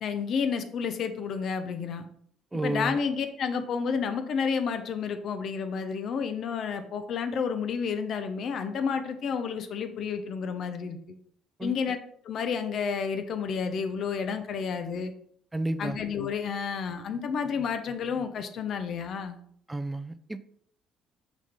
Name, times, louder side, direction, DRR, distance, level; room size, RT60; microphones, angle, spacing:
voice 1, 0.0-2.1 2.6-11.0 11.6-12.0 12.2-15.1 15.8-19.4, left 6 dB, 60° left, 0.8 m, -30 dB
voice 2, 2.5-3.0 11.6-12.0 15.5-16.0 19.7-20.4, right 2 dB, 15° right, 0.5 m, -32 dB
6.2 x 4.1 x 3.6 m
supercardioid pair, 70°, 0 cm